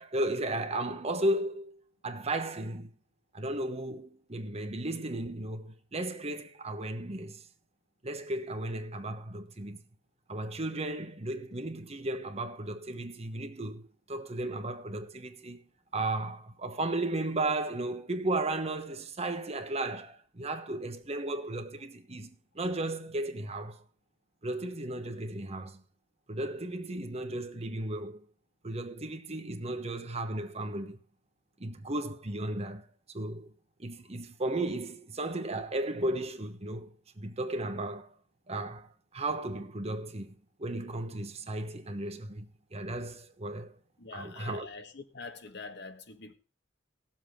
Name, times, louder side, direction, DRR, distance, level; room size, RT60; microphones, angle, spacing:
voice 1, 0.0-2.9 3.3-7.4 8.0-9.8 10.3-15.6 15.9-23.8 24.4-25.8 26.3-28.2 28.6-31.0 31.6-32.8 33.1-33.5 33.8-38.1 38.5-43.7 44.1-44.7, right 2 dB, 35° right, 1.1 m, -35 dB
voice 2, 44.0-46.3, left 4 dB, 60° left, 1.5 m, -44 dB
19.0 x 7.5 x 3.7 m
head